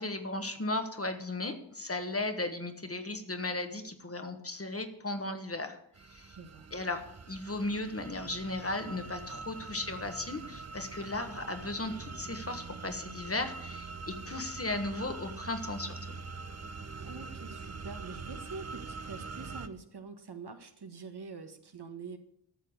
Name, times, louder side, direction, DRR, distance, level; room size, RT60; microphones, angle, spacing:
voice 1, 0.0-5.8 6.1-6.4 6.7-16.1, left 2 dB, 30° left, 6 dB, 1.5 m, -36 dB
sound 1, 5.9-19.7, right 4 dB, 35° right, 0.8 m, -44 dB
voice 2, 6.4-6.7 17.0-22.2, right 4 dB, 60° right, 6 dB, 1.6 m, -45 dB
13.0 x 6.8 x 8.0 m, 0.67 s
wide cardioid pair, 95°, 44 cm